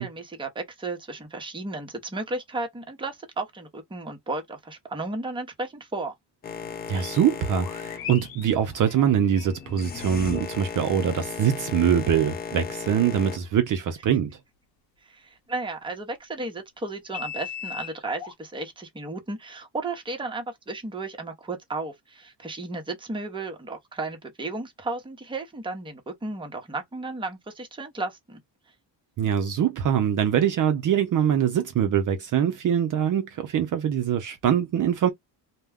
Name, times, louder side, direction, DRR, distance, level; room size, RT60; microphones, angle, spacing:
voice 1, 0.0-6.1 15.1-28.4, right 2 dB, 10° right, 0.8 m, -34 dB
Boat Water vehicle, 6.4-13.4, left 6 dB, 25° left, 0.3 m, -36 dB
sound 1, 6.9-10.8 11.6-11.7 12.9-13.0 17.1-18.3, left 9 dB, 55° left, 0.8 m, -40 dB
voice 2, 6.9-14.4 29.2-35.1, right 9 dB, 45° right, 0.6 m, -23 dB
2.2 x 2.2 x 3.4 m
cardioid pair, 130°, 43 cm